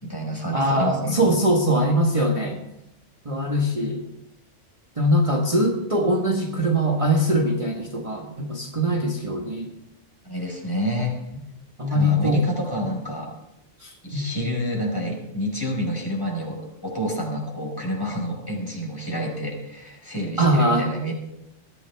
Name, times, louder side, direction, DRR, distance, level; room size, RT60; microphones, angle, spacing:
voice 1, 0.0-1.2 10.3-11.1 11.9-13.3 14.0-21.1, equal, 15° left, -2 dB, 4.9 m, -28 dB
voice 2, 0.5-2.6 3.2-4.1 5.0-9.7 11.8-12.4 13.8-14.3 20.4-20.9, equal, 30° right, 0 dB, 1.4 m, -22 dB
21.0 x 13.5 x 3.5 m, 0.83 s
omnidirectional pair, 1.3 m